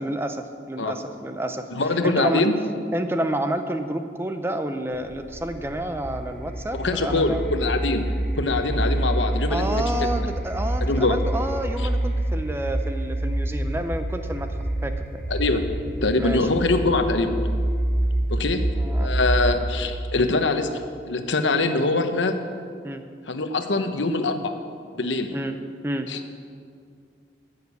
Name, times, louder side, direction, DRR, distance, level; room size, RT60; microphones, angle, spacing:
voice 1, 0.0-1.7 2.0-2.4 2.9-7.4 9.5-14.5 14.8-15.2 16.2-16.5 18.8-19.1 22.8-23.1 25.3-25.5 25.8-26.1, right 1 dB, 15° right, 7 dB, 0.6 m, -29 dB
voice 2, 1.7-2.5 6.7-8.1 8.3-10.3 10.8-11.2 15.3-15.6 16.0-17.3 18.3-18.6 19.0-22.4 23.3-24.5 24.9-25.3 26.1-26.2, left 3 dB, 90° left, 7 dB, 1.0 m, -23 dB
sound 1, 4.9-19.8, right 1 dB, 5° left, 2.0 m, -27 dB
13.5 x 6.7 x 8.3 m, 2.2 s
head